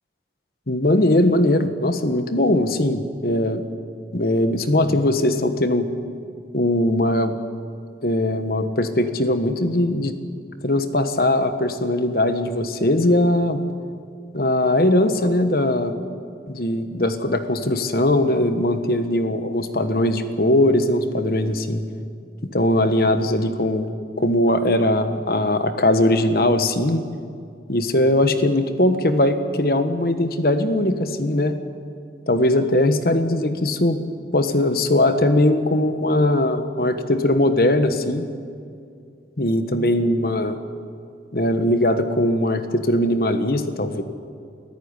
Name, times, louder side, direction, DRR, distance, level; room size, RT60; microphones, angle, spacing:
voice 1, 0.7-3.7 4.1-5.9 6.5-7.3 8.0-10.1 10.6-13.6 14.3-16.0 16.5-21.8 22.5-23.9 24.2-27.0 27.7-31.6 32.3-34.0 34.3-38.2 39.4-40.6 41.3-44.0, left 1 dB, 55° left, 9 dB, 1.3 m, -20 dB
23.5 x 14.0 x 9.8 m, 2.4 s
head